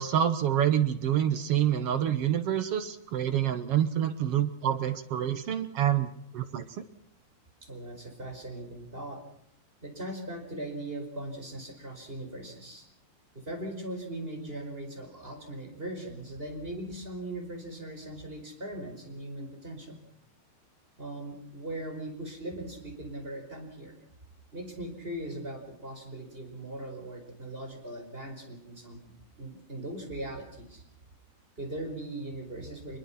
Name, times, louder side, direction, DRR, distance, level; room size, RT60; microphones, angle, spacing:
voice 1, 0.0-6.1 6.3-6.6, right 10 dB, 60° right, 10 dB, 1.8 m, -27 dB
voice 2, 7.6-9.2 9.8-12.8 13.3-20.0 21.0-23.9 24.5-29.0 29.4-30.8 31.6-33.0, right 1 dB, 15° right, 3 dB, 5.0 m, -39 dB
25.0 x 22.0 x 5.9 m, 0.70 s
omnidirectional pair, 3.9 m